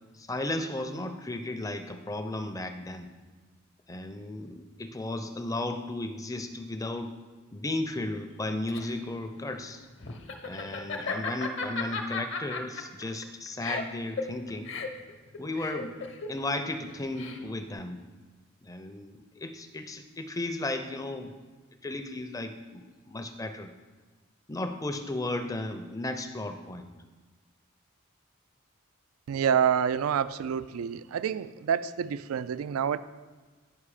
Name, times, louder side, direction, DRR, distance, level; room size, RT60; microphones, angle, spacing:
voice 1, 0.1-3.1 3.9-7.2 7.5-9.9 10.4-14.7 15.4-16.0 16.3-18.0 18.6-21.3 21.8-23.7 24.5-26.9, left 2 dB, 15° left, 8 dB, 0.5 m, -35 dB
Laughter, 8.3-17.7, left 4 dB, 60° left, 0.8 m, -36 dB
voice 2, 29.3-33.0, right 8 dB, 90° right, 16 dB, 0.3 m, -27 dB
9.7 x 5.5 x 4.9 m, 1.4 s
head